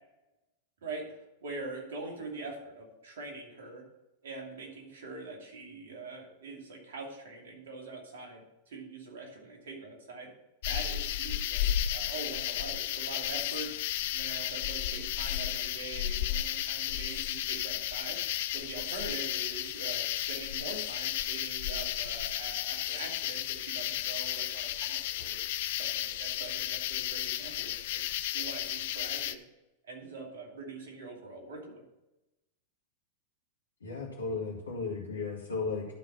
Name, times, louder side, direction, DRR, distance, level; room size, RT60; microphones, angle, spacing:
voice 1, 0.8-3.8 4.2-10.3 10.7-13.7 14.1-18.2 18.5-25.4 25.7-28.0 28.3-29.4 29.8-31.8, right 3 dB, 70° right, 0 dB, 2.5 m, -43 dB
sound 1, 10.6-29.4, left 12 dB, 60° left, 0.5 m, -33 dB
voice 2, 33.8-35.9, left 4 dB, 85° left, -5 dB, 1.7 m, -35 dB
12.0 x 4.1 x 6.1 m, 0.98 s
hypercardioid pair, 95°, 0 cm